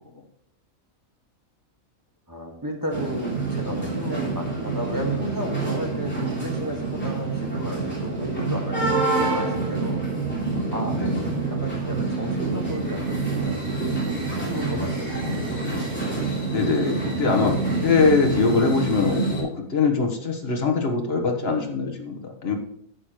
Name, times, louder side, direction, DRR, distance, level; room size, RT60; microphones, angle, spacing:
voice 1, 2.3-10.0 10.7-11.0 11.5-14.0 14.3-15.5, equal, 15° right, 0 dB, 1.7 m, -33 dB
sound 1, 2.9-19.4, right 3 dB, 5° left, 3.2 m, -27 dB
voice 2, 16.5-22.6, left 4 dB, 45° left, 3 dB, 1.5 m, -23 dB
10.5 x 8.2 x 3.1 m, 0.76 s
omnidirectional pair, 1.5 m